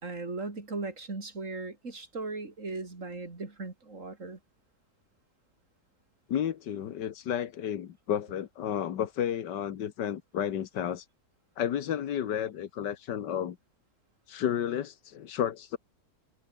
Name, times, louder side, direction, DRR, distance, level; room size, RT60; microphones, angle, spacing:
voice 1, 0.0-4.4, right 3 dB, 45° right, 3.9 m, -38 dB
voice 2, 6.3-11.1 11.6-13.6 14.3-15.8, left 9 dB, 90° left, 1.8 m, -32 dB
omnidirectional pair, 1.8 m